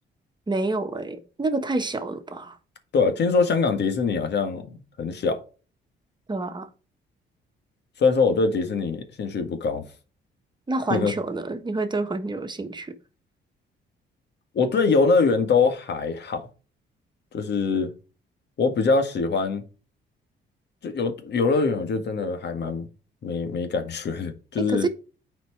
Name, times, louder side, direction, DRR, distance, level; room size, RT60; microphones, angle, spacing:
voice 1, 0.5-2.6 6.3-6.7 10.7-13.0 24.6-24.9, right 2 dB, 20° right, 1.3 m, -28 dB
voice 2, 2.9-5.4 8.0-9.8 10.9-11.1 14.5-16.4 17.3-17.9 18.6-19.6 20.8-22.9 23.2-24.9, left 4 dB, 60° left, 1.8 m, -23 dB
9.3 x 4.6 x 4.6 m
cardioid pair, 90°, 20 cm